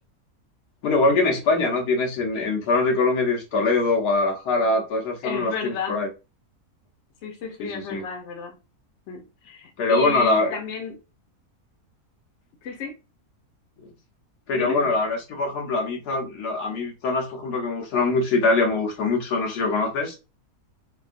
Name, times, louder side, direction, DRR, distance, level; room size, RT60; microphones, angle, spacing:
voice 1, 0.8-6.1 7.6-8.0 9.8-10.5 14.5-20.1, left 3 dB, 85° left, 1 dB, 1.4 m, -23 dB
voice 2, 5.2-6.0 7.2-8.5 9.1-11.0 12.6-13.0 14.5-14.8, left 5 dB, 55° left, 3 dB, 0.9 m, -32 dB
3.4 x 2.3 x 2.4 m, 0.28 s
omnidirectional pair, 1.6 m